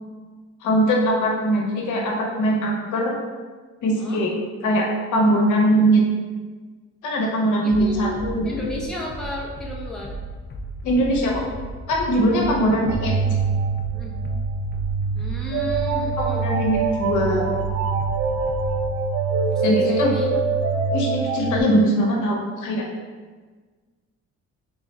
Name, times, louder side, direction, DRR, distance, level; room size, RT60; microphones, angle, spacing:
voice 1, 0.6-3.1 3.8-4.3 4.6-6.0 7.0-8.5 10.8-11.4 11.9-13.2 16.2-17.5 19.6-20.1 20.9-22.8, right 1 dB, 80° left, -1 dB, 0.9 m, -21 dB
voice 2, 7.6-8.2 8.4-10.1 12.3-12.5 13.9-14.2 15.1-16.5 19.5-20.4, left 2 dB, ahead, -4 dB, 0.8 m, -33 dB
sound 1, 7.7-18.9, right 1 dB, 35° left, 0.5 m, -35 dB
sound 2, 12.9-21.6, right 4 dB, 55° right, 0.4 m, -24 dB
3.4 x 2.4 x 4.2 m, 1.4 s
cardioid pair, 90°, 30 cm